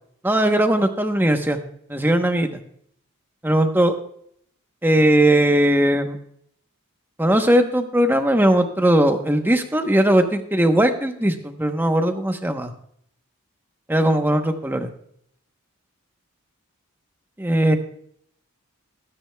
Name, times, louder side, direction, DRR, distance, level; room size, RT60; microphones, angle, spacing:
voice 1, 0.2-1.6 1.9-2.6 3.4-3.9 4.8-6.2 7.2-12.7 13.9-14.9 17.4-17.8, right 1 dB, 10° right, 6 dB, 0.9 m, -19 dB
21.5 x 9.8 x 2.3 m, 0.68 s
head